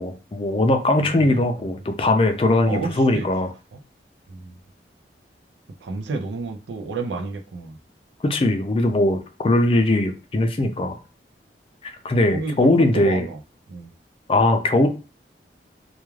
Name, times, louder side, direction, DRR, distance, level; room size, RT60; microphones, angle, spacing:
voice 1, 0.0-3.5 8.2-11.0 12.0-13.3 14.3-14.9, left 2 dB, 30° left, 0.4 m, -20 dB
voice 2, 1.0-1.8 2.7-3.2 3.7-3.8 4.3-4.5 5.8-7.7 12.3-13.4 13.7-13.9, right 3 dB, 85° right, 0.4 m, -31 dB
2.3 x 2.3 x 3.1 m
head